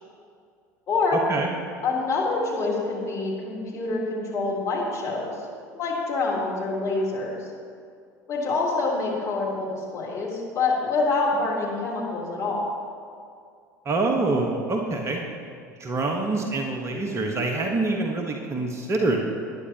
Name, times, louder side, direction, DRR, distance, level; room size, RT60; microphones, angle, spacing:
voice 1, 0.9-1.2 1.8-5.3 5.7-7.4 8.3-12.7, left 3 dB, 35° left, -4 dB, 3.6 m, -26 dB
voice 2, 13.8-15.2 15.8-19.3, right 2 dB, 30° right, 2 dB, 1.3 m, -25 dB
19.5 x 9.9 x 3.0 m, 2.3 s
figure-of-eight pair, 70°, 10 cm